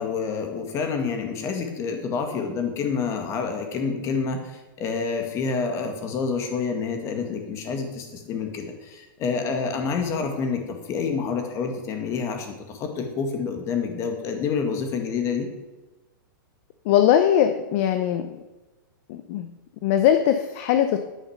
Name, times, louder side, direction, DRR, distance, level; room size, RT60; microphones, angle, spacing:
voice 1, 0.0-15.5, left 5 dB, 25° left, 5 dB, 2.1 m, -28 dB
voice 2, 16.8-18.4 19.1-19.5 19.8-21.0, left 10 dB, 40° left, 8 dB, 0.8 m, -20 dB
10.0 x 9.0 x 6.6 m, 1.1 s
hypercardioid pair, 155°, 11 cm